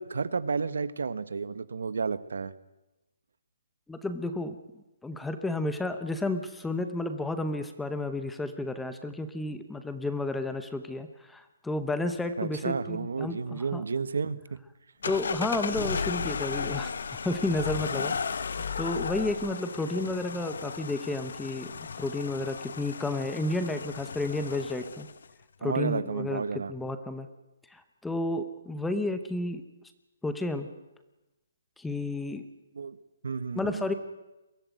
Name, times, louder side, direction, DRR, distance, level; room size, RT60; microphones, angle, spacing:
voice 1, 0.0-2.5 12.4-14.4 25.6-26.7 32.7-33.0 33.2-33.8, right 5 dB, 75° right, 16 dB, 1.2 m, -31 dB
voice 2, 3.9-4.6 5.0-13.8 15.0-16.9 17.2-18.1 18.8-21.7 22.0-25.1 25.6-26.4 26.7-27.3 27.7-29.6 30.2-30.7 31.8-32.4 33.5-33.9, left 2 dB, 5° left, 9 dB, 0.8 m, -31 dB
sound 1, 15.0-25.3, left 5 dB, 60° left, 1.2 m, -35 dB
22.5 x 15.5 x 9.2 m, 1.0 s
hypercardioid pair, 175°, 0 cm